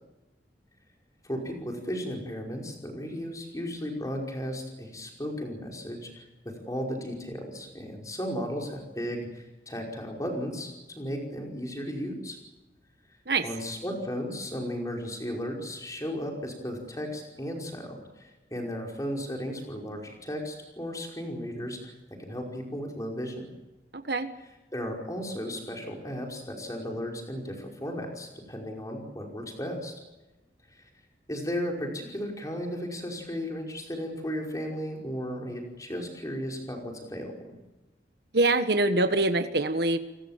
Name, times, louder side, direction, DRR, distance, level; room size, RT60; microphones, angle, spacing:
voice 1, 1.2-6.3 6.7-12.4 13.4-21.9 22.2-23.4 24.7-29.9 30.7-30.9 31.3-37.3, equal, 20° left, 0 dB, 5.3 m, -35 dB
voice 2, 23.9-24.3 38.3-40.0, right 2 dB, 65° right, 9 dB, 1.5 m, -24 dB
29.5 x 19.0 x 7.5 m, 1.1 s
head